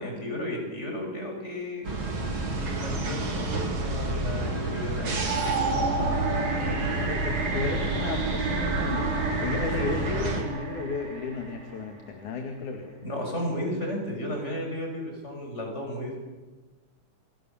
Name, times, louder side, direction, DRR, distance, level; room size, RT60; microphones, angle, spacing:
voice 1, 0.0-1.9 2.5-5.4 9.8-9.9 13.0-16.2, left 1 dB, 20° left, 2 dB, 7.0 m, -34 dB
sound 1, 1.8-10.4, right 2 dB, 40° right, 3.9 m, -30 dB
sound 2, 5.1-12.2, right 3 dB, 60° right, 5.0 m, -31 dB
voice 2, 6.6-13.0, left 4 dB, 80° left, 5 dB, 3.6 m, -34 dB
28.5 x 27.0 x 7.2 m, 1.2 s
omnidirectional pair, 3.5 m